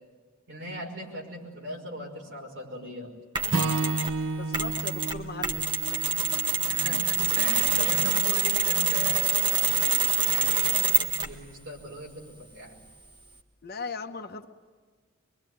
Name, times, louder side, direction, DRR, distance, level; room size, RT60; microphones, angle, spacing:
voice 1, 0.5-3.1 6.6-9.7 10.1-12.8, equal, 70° right, 0 dB, 5.6 m, -39 dB
Mechanisms, 3.3-4.2 4.5-11.4, right 5 dB, 25° right, 1.4 m, -26 dB
Acoustic guitar / Strum, 3.5-7.8, right 3 dB, 85° right, 0.9 m, -32 dB
voice 2, 4.4-5.8 6.9-7.0 13.6-14.5, left 4 dB, 50° left, 6 dB, 1.1 m, -38 dB
25.0 x 23.5 x 9.4 m, 1.4 s
head